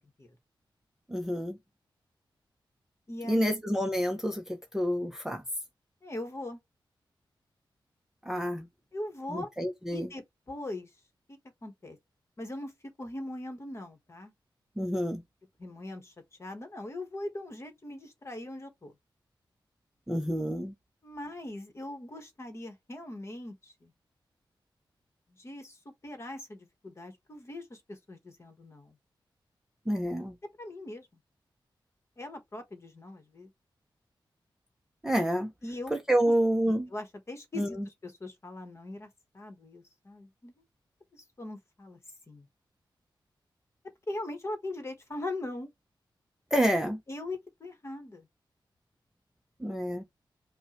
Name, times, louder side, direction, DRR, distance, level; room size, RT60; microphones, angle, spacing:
voice 1, 1.1-1.6 3.2-5.4 8.2-8.7 9.3-10.1 14.8-15.2 20.1-20.7 29.9-30.3 35.0-35.5 35.9-36.9 37.6-37.8 46.5-47.0 49.6-50.0, equal, 5° right, 0.6 m, -28 dB
voice 2, 3.1-3.6 6.0-6.6 8.9-9.5 9.9-10.9 11.3-12.0 12.4-14.3 15.6-16.1 16.4-19.0 21.0-23.9 25.3-29.0 30.6-31.1 32.2-33.5 35.6-35.9 36.2-36.3 36.7-40.6 41.1-42.0 42.3-42.5 44.1-45.7 47.1-48.3, left 1 dB, 35° left, 1.2 m, -41 dB
5.3 x 2.2 x 3.0 m
wide cardioid pair, 150°, 8 cm